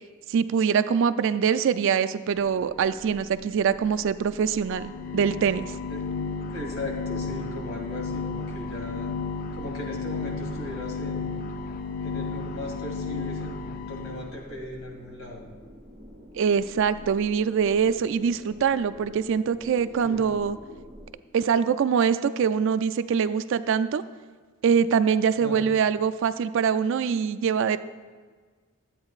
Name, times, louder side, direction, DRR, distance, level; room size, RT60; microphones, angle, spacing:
voice 1, 0.3-5.7 16.3-20.6 21.3-24.0 24.6-27.8, right 7 dB, 60° right, 12 dB, 0.3 m, -24 dB
sound 1, 2.3-21.1, equal, 40° right, 1.1 m, -48 dB
sound 2, 4.7-14.4, left 4 dB, 40° left, 0.3 m, -33 dB
voice 2, 6.5-9.1 9.5-11.5 12.0-15.4 20.0-20.3 25.4-25.6, left 1 dB, 90° left, -1 dB, 2.2 m, -38 dB
12.5 x 8.5 x 2.4 m, 1.5 s
head